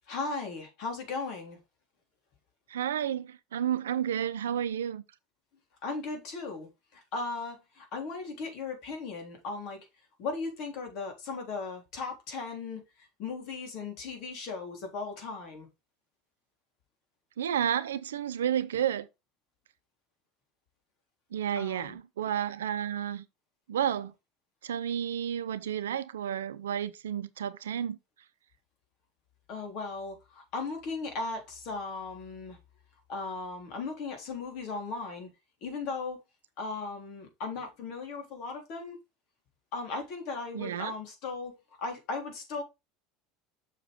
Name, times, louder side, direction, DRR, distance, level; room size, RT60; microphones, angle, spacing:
voice 1, 0.1-1.6 5.8-9.8 10.2-12.8 13.2-15.7 21.6-22.0 29.5-32.6 33.1-35.3 35.6-36.2 36.6-39.0 39.7-42.6, left 4 dB, 55° left, 3.6 m, -37 dB
voice 2, 2.7-5.0 17.4-19.1 21.3-23.2 23.7-24.1 24.6-28.0 40.5-40.9, right 9 dB, 75° right, 0.7 m, -31 dB
6.9 x 6.7 x 3.6 m
figure-of-eight pair, 70°, 0 cm